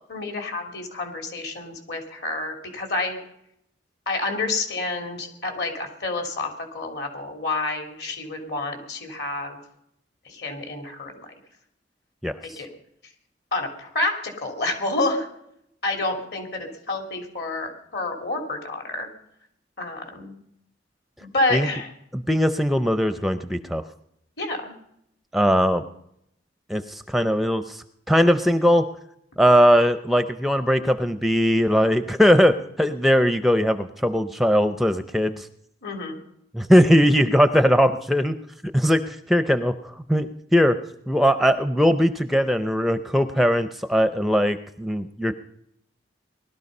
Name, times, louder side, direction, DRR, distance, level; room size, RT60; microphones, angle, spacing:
voice 1, 0.1-3.2 4.1-9.6 10.2-11.3 12.6-12.7 13.5-15.3 15.8-19.1 19.8-20.3 21.2-21.9 24.4-24.8 35.8-36.2, left 2 dB, 60° left, 4 dB, 3.3 m, -29 dB
voice 2, 12.2-12.6 21.5-21.7 22.1-23.8 25.3-25.8 26.7-28.8 29.4-35.5 36.5-38.4 38.7-40.8 41.1-45.3, equal, ahead, 10 dB, 0.5 m, -20 dB
19.5 x 12.5 x 5.4 m, 0.75 s
head